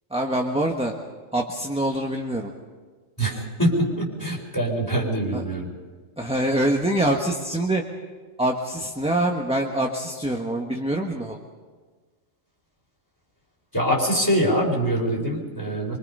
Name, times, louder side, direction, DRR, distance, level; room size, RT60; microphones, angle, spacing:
voice 1, 0.1-0.9 1.3-2.5 5.3-5.4 6.2-7.8 8.4-11.4, right 1 dB, 5° right, 1 dB, 1.2 m, -24 dB
voice 2, 3.2-5.7 13.7-16.0, right 1 dB, 15° left, -2 dB, 4.6 m, -24 dB
25.0 x 24.0 x 5.5 m, 1.5 s
omnidirectional pair, 1.3 m